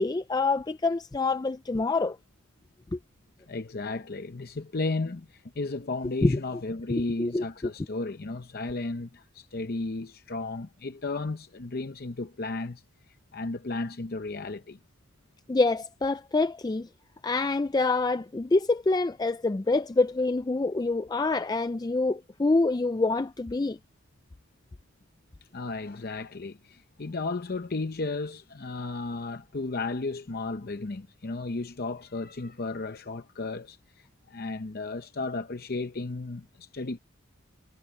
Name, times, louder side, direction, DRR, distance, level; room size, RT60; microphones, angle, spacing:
voice 1, 0.0-2.2 2.9-3.0 6.2-6.4 7.2-7.4 15.5-16.9 17.2-23.8, left 3 dB, 20° left, 0.3 m, -26 dB
voice 2, 3.5-12.8 13.3-14.8 25.5-37.0, left 3 dB, 45° left, 0.7 m, -34 dB
head